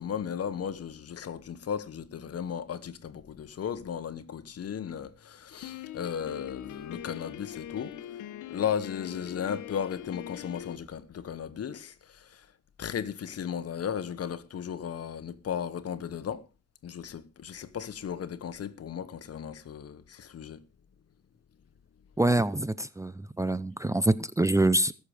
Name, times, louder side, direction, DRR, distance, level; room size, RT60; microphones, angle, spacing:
voice 1, 0.0-8.0 8.5-12.5 12.8-16.4 16.8-20.6, left 8 dB, 55° left, 1.3 m, -35 dB
Piano, 5.6-10.8, left 11 dB, 80° left, 1.2 m, -42 dB
voice 2, 22.2-24.9, right 2 dB, 10° right, 0.7 m, -25 dB
20.0 x 7.0 x 5.0 m
cardioid pair, 90°, 30 cm